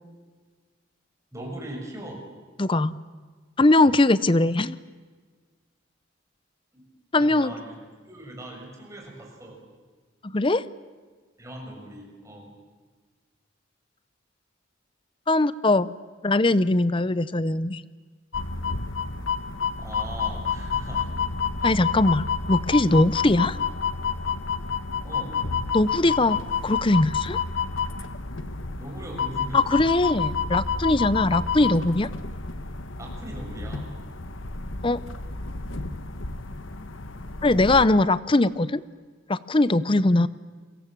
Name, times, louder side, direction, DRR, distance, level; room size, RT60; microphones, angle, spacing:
voice 1, 1.3-2.2 6.7-6.8 7.2-7.8 8.1-9.6 11.4-12.5 19.8-21.1 21.6-21.7 25.0-25.4 28.8-29.9 33.0-33.9, right 1 dB, 15° right, 0 dB, 6.6 m, -39 dB
voice 2, 2.6-2.9 3.6-4.8 7.1-7.5 10.2-10.6 15.3-15.9 16.2-17.8 21.6-23.6 25.7-26.4 26.6-27.4 29.5-32.1 34.8-35.0 37.4-38.8 39.3-40.3, left 2 dB, 25° left, 17 dB, 0.7 m, -21 dB
sound 1, 18.3-37.9, left 5 dB, 85° left, 1.4 m, -29 dB
30.0 x 23.0 x 7.5 m, 1.4 s
head